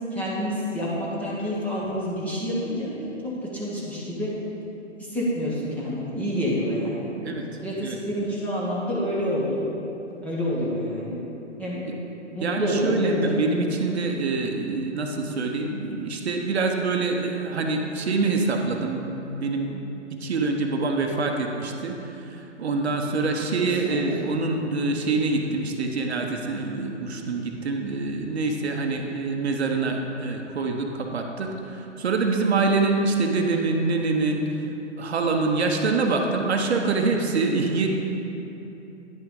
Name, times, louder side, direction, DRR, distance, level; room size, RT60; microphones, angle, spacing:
voice 1, 0.1-2.9 3.4-4.3 5.0-7.1 7.6-9.6 10.2-11.2 11.6-11.8 12.3-13.4 23.4-24.1, equal, 5° left, -8 dB, 0.9 m, -28 dB
voice 2, 12.4-19.8 20.1-34.6 35.0-37.9, right 3 dB, 60° right, 3 dB, 0.8 m, -25 dB
10.0 x 5.7 x 3.7 m, 3.0 s
figure-of-eight pair, 130°, 37 cm